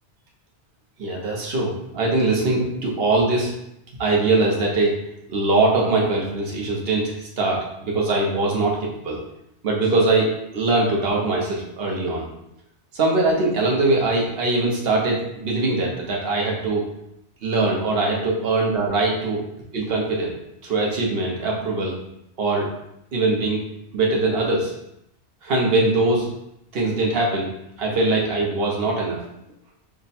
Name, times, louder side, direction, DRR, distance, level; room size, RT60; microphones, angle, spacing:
voice 1, 1.0-3.5 4.0-5.0 5.3-9.2 9.6-12.3 12.9-16.8 17.4-19.4 19.7-20.3 20.6-22.0 22.4-22.7 23.1-23.6 23.9-24.7 25.4-26.3 26.7-27.5 27.8-29.2, right 2 dB, 60° right, -2 dB, 1.1 m, -22 dB
3.5 x 2.2 x 4.1 m, 0.80 s
omnidirectional pair, 1.2 m